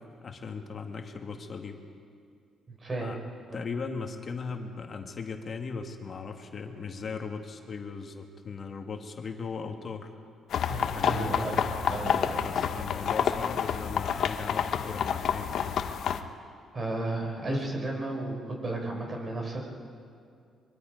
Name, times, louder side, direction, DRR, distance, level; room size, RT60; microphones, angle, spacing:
voice 1, 0.2-1.8 3.0-3.2 3.5-10.1 11.0-11.4 12.4-15.9 17.4-17.6, left 5 dB, 45° left, 4 dB, 1.9 m, -38 dB
voice 2, 2.7-3.1 3.5-3.6 10.7-11.6 11.9-12.7 16.7-19.6, right 2 dB, 35° right, 0 dB, 5.8 m, -33 dB
sound 1, 10.5-16.2, left 8 dB, 70° left, 1.1 m, -29 dB
24.0 x 24.0 x 5.2 m, 2.3 s
cardioid pair, 90°, 0 cm